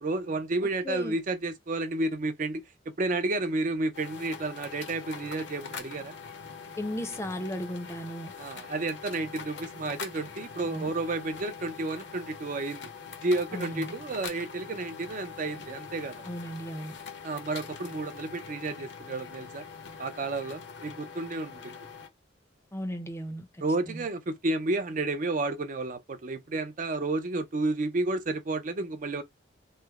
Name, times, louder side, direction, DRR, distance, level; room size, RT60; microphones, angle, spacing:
voice 1, 0.0-2.6 3.0-6.1 8.4-12.8 13.2-16.3 17.2-19.6 20.0-21.8 23.6-29.2, right 2 dB, 45° right, 0.5 m, -31 dB
voice 2, 0.8-1.1 6.8-8.3 10.6-10.9 13.5-14.0 16.2-17.0 22.7-24.1, equal, 15° left, 0.5 m, -36 dB
sound 1, 3.9-22.1, left 5 dB, 60° left, 0.7 m, -43 dB
3.2 x 2.0 x 3.4 m
head